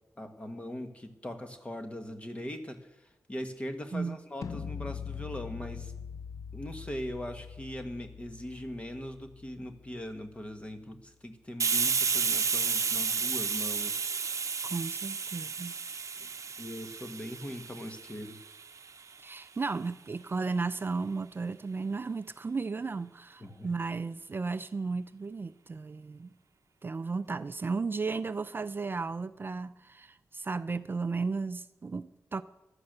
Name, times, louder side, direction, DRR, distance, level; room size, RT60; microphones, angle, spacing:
voice 1, 0.2-5.9 6.5-14.0 16.2-16.3 16.6-18.4 23.4-23.7, equal, 20° left, 6 dB, 1.5 m, -40 dB
sound 1, 4.4-10.4, left 7 dB, 70° left, 0.7 m, -42 dB
Hiss, 11.6-19.0, right 5 dB, 60° right, 0.7 m, -32 dB
voice 2, 14.6-15.8 19.2-26.3 26.8-32.4, right 4 dB, 40° right, 13 dB, 0.4 m, -34 dB
15.5 x 11.5 x 6.7 m, 1.0 s
wide cardioid pair, 120°, 6 cm